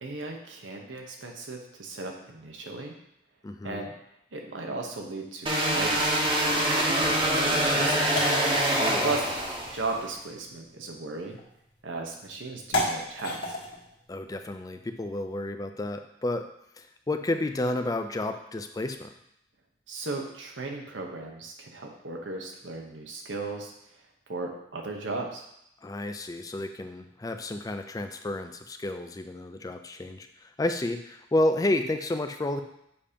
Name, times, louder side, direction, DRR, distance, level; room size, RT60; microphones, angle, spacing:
voice 1, 0.0-3.0 3.6-3.9 4.3-7.1 7.4-8.3 9.0-9.3 9.7-11.4 11.8-13.6 19.9-23.7 24.3-25.4, right 3 dB, 80° right, 1 dB, 0.9 m, -36 dB
voice 2, 3.4-3.9 8.6-9.0 14.1-16.4 16.8-19.1 25.8-32.6, left 1 dB, 20° left, 7 dB, 0.4 m, -31 dB
sound 1, 5.5-10.0, right 1 dB, 25° right, 0.8 m, -25 dB
sound 2, 8.1-15.5, left 1 dB, 80° left, 1.5 m, -37 dB
7.0 x 2.8 x 5.0 m, 0.78 s
head